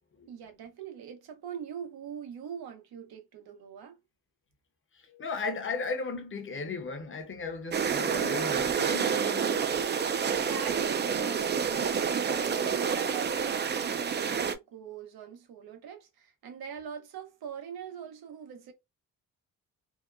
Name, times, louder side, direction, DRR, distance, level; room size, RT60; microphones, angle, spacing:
voice 1, 0.3-4.0 10.4-18.7, right 8 dB, 85° right, 0.9 m, -43 dB
voice 2, 4.9-9.9, left 4 dB, 35° left, 0.8 m, -36 dB
sound 1, 7.7-14.5, right 6 dB, 30° right, 0.4 m, -28 dB
2.8 x 2.1 x 2.4 m
cardioid pair, 90°, 36 cm